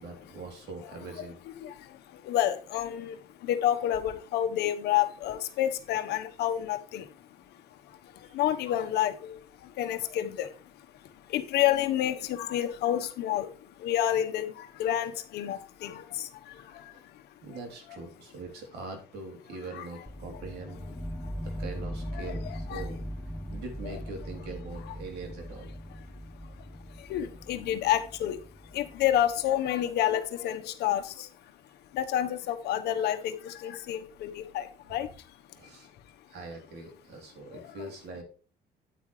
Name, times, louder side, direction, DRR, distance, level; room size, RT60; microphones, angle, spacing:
voice 1, 0.0-1.4 8.2-8.4 16.7-17.1 17.4-20.8 21.4-22.4 22.7-23.1 23.5-25.7 35.5-35.9 36.3-38.2, right 3 dB, 75° right, 3 dB, 3.4 m, -42 dB
voice 2, 1.6-17.2 19.7-19.9 21.2-21.5 22.1-22.9 26.4-31.5 31.9-35.9 37.5-37.7, left 11 dB, 75° left, 8 dB, 1.2 m, -30 dB
sound 1, 20.1-29.9, equal, 5° left, 0.7 m, -40 dB
9.3 x 8.8 x 3.2 m, 0.38 s
cardioid pair, 110°, 17 cm